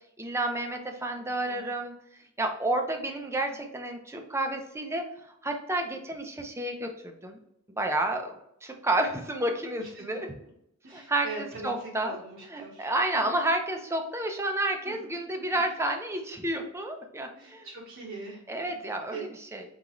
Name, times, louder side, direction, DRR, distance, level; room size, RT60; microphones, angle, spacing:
voice 1, 0.2-1.9 2.4-7.4 7.7-8.3 8.6-10.3 10.9-12.1 12.5-17.7 18.5-19.6, right 1 dB, 15° right, 4 dB, 0.5 m, -30 dB
voice 2, 1.0-1.6 3.5-3.6 9.8-10.5 10.8-13.3 14.9-15.0 15.5-15.6 17.4-19.2, right 3 dB, 65° right, -5 dB, 1.0 m, -43 dB
4.0 x 3.8 x 3.0 m, 0.78 s
head